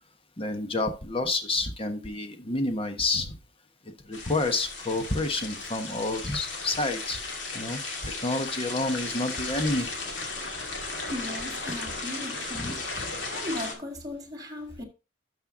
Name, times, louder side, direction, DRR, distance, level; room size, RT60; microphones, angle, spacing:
voice 1, 0.4-3.3 4.1-7.2 7.5-9.9 12.6-12.7, left 2 dB, 30° left, 1.2 m, -29 dB
sound 1, 4.1-13.7, left 3 dB, 80° left, 2.6 m, -35 dB
voice 2, 11.1-12.8 13.1-14.8, left 1 dB, 20° right, 1.9 m, -37 dB
12.0 x 5.6 x 3.8 m
head